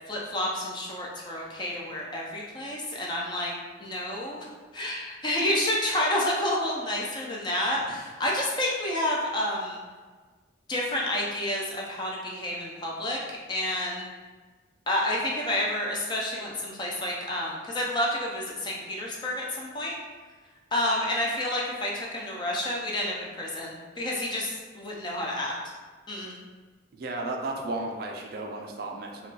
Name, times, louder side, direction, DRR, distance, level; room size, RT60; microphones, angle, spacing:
voice 1, 0.1-3.5 3.8-4.5 4.7-9.8 10.7-13.2 13.5-14.1 14.9-20.0 20.7-25.5 26.1-26.3, left 1 dB, 20° left, -3 dB, 0.4 m, -29 dB
voice 2, 26.9-29.3, right 2 dB, 50° right, 1 dB, 0.3 m, -34 dB
2.3 x 2.2 x 3.9 m, 1.4 s
head